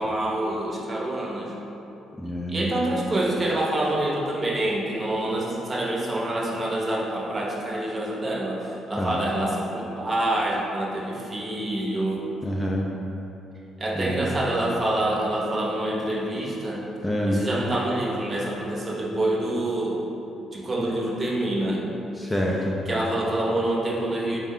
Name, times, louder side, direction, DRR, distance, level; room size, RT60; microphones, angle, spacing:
voice 1, 0.0-1.5 2.5-12.2 13.8-16.8 17.3-20.0 20.5-21.8 22.3-22.4 22.9-24.4, right 1 dB, 30° right, -3 dB, 0.7 m, -26 dB
voice 2, 2.2-2.7 9.0-9.2 12.4-12.9 14.0-14.4 17.0-17.4 22.2-22.8, equal, 10° left, -3 dB, 0.4 m, -26 dB
4.7 x 2.1 x 3.7 m, 3.0 s
cardioid pair, 85°, 0 cm